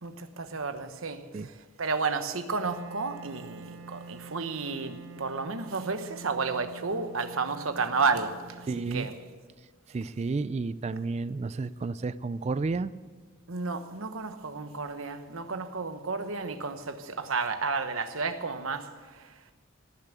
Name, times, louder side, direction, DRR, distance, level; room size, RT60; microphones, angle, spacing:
voice 1, 0.0-1.5 1.8-9.1 13.5-19.3, right 4 dB, 80° right, 1.1 m, -32 dB
Wind instrument woodwind instrument, 2.6-9.5, right 4 dB, 65° right, 0.8 m, -47 dB
voice 2, 8.7-9.1 9.9-12.9, right 3 dB, 30° right, 0.3 m, -31 dB
18.0 x 7.1 x 8.2 m
head